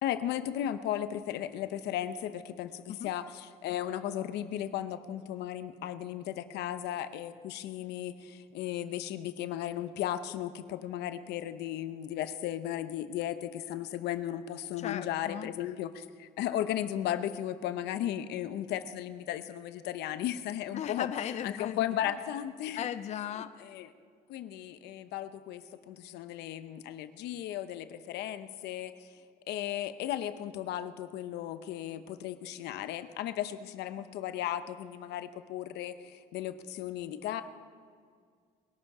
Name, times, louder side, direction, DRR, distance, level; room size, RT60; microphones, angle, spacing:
voice 1, 0.0-21.1 21.4-22.9 23.6-23.9 24.3-29.1 29.5-37.4, left 11 dB, 80° left, 11 dB, 0.8 m, -35 dB
voice 2, 14.8-15.5 20.7-21.8 22.8-23.6, left 9 dB, 40° left, 11 dB, 0.5 m, -36 dB
21.5 x 12.0 x 4.8 m, 2.1 s
cardioid pair, 110°, 17 cm